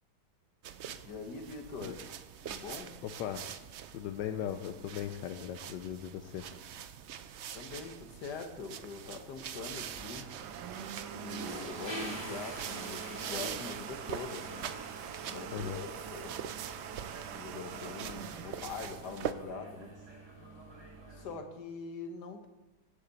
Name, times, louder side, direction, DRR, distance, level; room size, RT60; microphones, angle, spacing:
sound 1, 0.6-19.3, right 9 dB, 90° right, 0.6 m, -44 dB
voice 1, 1.1-2.0 2.4-3.0 7.5-10.3 11.1-14.7 15.2-16.4 17.3-19.9 21.1-22.5, left 4 dB, 70° left, 6 dB, 1.8 m, -43 dB
voice 2, 3.0-3.5 3.9-6.4 15.5-15.8, left 10 dB, 85° left, 7 dB, 1.3 m, -38 dB
Domestic sounds home sounds, 9.2-19.9, right 8 dB, 70° right, 1.2 m, -45 dB
sound 2, 9.6-21.3, right 1 dB, 15° right, 2.2 m, -47 dB
16.5 x 8.3 x 4.1 m, 1.0 s
omnidirectional pair, 1.9 m